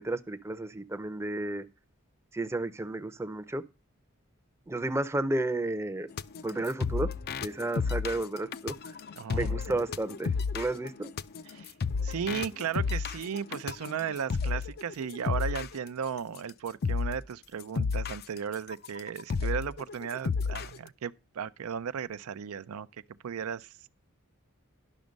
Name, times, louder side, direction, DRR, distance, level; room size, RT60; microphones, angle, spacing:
voice 1, 0.0-1.7 2.3-3.6 4.7-6.1 6.4-7.1 7.4-9.0 9.3-11.1, right 2 dB, 10° right, 0.5 m, -32 dB
sound 1, 6.2-15.8 16.4-16.5 16.8-17.2 17.6-20.8, left 5 dB, 50° left, 0.4 m, -32 dB
voice 2, 9.2-9.8 11.5-11.7 12.0-22.9 23.2-23.9, right 7 dB, 90° right, 0.4 m, -35 dB
11.0 x 6.1 x 5.1 m
head